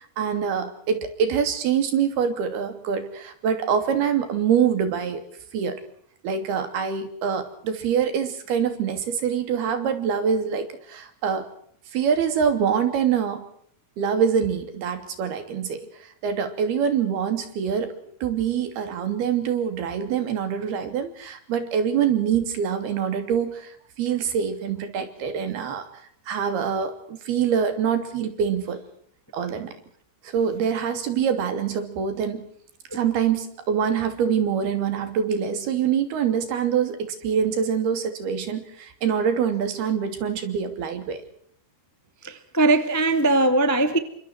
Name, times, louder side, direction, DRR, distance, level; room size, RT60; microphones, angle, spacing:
voice 1, 0.0-5.2 5.5-5.8 6.2-11.4 11.9-13.4 14.0-17.9 18.2-25.8 26.3-28.8 29.3-29.7 30.2-32.5 32.9-41.2, right 7 dB, 85° right, 4.9 m, -25 dB
voice 2, 42.2-44.0, right 2 dB, 10° left, 0.8 m, -20 dB
30.0 x 25.5 x 4.6 m
omnidirectional pair, 4.4 m